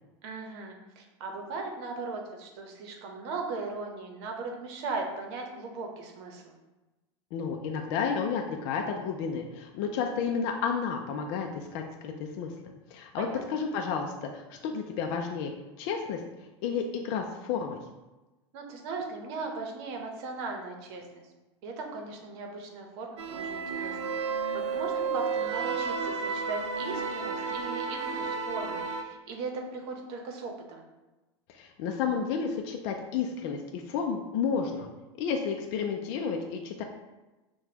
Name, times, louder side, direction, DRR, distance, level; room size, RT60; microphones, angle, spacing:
voice 1, 0.2-6.6 13.2-13.6 18.5-21.3 21.6-24.1 24.5-30.8, right 3 dB, 65° right, 2 dB, 0.9 m, -38 dB
voice 2, 7.3-12.5 12.9-15.5 15.8-16.2 16.6-17.8 31.5-34.9 35.2-36.8, left 6 dB, 60° left, 3 dB, 0.5 m, -31 dB
sound 1, 23.2-29.0, right 5 dB, 85° right, 0.5 m, -32 dB
5.8 x 2.3 x 2.8 m, 1.1 s
hypercardioid pair, 100°, 15 cm